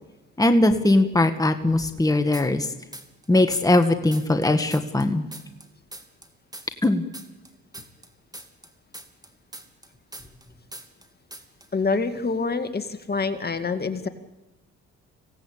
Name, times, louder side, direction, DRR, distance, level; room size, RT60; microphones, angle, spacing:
voice 1, 0.4-2.7 3.3-5.2 6.8-7.0, left 2 dB, 10° left, 7 dB, 1.8 m, -20 dB
sound 1, 2.3-3.3 3.5-6.3 6.5-10.5 10.7-11.1 11.3-11.7, right 1 dB, 15° right, 2.9 m, -41 dB
voice 2, 11.7-14.1, left 4 dB, 35° left, 8 dB, 2.1 m, -26 dB
26.0 x 17.5 x 8.8 m, 1.1 s
supercardioid pair, 65°, 30 cm